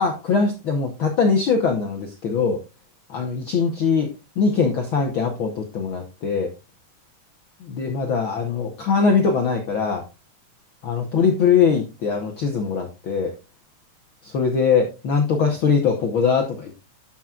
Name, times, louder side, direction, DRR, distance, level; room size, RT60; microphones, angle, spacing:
voice 1, 0.0-2.6 3.1-6.5 7.6-10.1 10.8-13.3 14.2-16.8, left 5 dB, 75° left, 3 dB, 1.1 m, -21 dB
13.0 x 5.9 x 2.4 m, 0.26 s
omnidirectional pair, 3.8 m